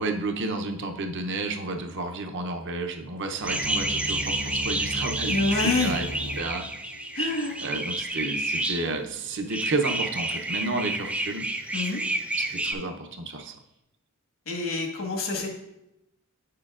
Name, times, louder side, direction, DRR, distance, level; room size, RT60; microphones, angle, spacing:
voice 1, 0.0-6.1 6.4-6.7 7.6-11.5 12.4-13.6, right 3 dB, 55° right, 4 dB, 0.7 m, -31 dB
sound 1, 3.4-8.8 9.5-12.7, right 2 dB, 5° right, 0.3 m, -30 dB
sound 2, 3.4-9.4, equal, 80° right, 1.5 m, -38 dB
voice 2, 5.3-6.0 7.1-7.6 11.7-12.0 14.4-15.5, left 3 dB, 65° left, 1 dB, 1.4 m, -27 dB
8.8 x 6.7 x 2.4 m, 0.89 s
head